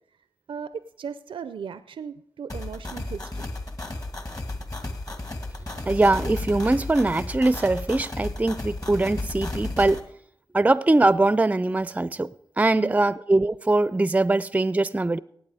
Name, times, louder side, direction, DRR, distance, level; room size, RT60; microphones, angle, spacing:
voice 1, 0.5-3.5 12.8-13.2, right 7 dB, 85° right, 0.4 m, -37 dB
sound 1, 2.5-10.0, left 2 dB, 40° left, 1.8 m, -33 dB
voice 2, 5.9-10.0 10.5-12.3 12.6-15.2, right 2 dB, 15° right, 0.4 m, -22 dB
18.5 x 8.2 x 4.9 m
cardioid pair, 55°, 9 cm